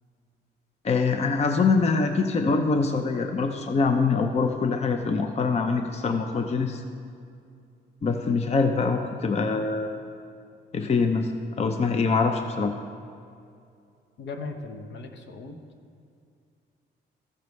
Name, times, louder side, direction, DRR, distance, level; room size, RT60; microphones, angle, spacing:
voice 1, 0.8-6.8 8.0-10.0 10.7-11.3 11.6-12.7, left 4 dB, 35° left, 6 dB, 0.6 m, -24 dB
voice 2, 14.2-15.6, left 3 dB, 65° left, 5 dB, 0.9 m, -38 dB
14.0 x 6.7 x 3.2 m, 2.4 s
cardioid pair, 90°, 20 cm